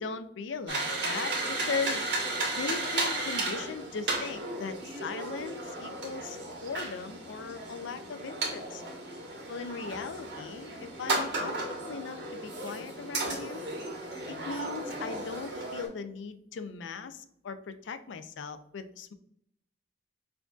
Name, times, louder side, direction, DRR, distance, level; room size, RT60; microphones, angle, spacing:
voice 1, 0.0-2.1 2.5-8.8 9.5-13.7 14.3-19.1, left 5 dB, 80° left, 11 dB, 0.4 m, -38 dB
sound 1, 0.7-15.9, right 2 dB, 65° right, 1.3 m, -34 dB
5.8 x 2.5 x 2.3 m, 0.72 s
head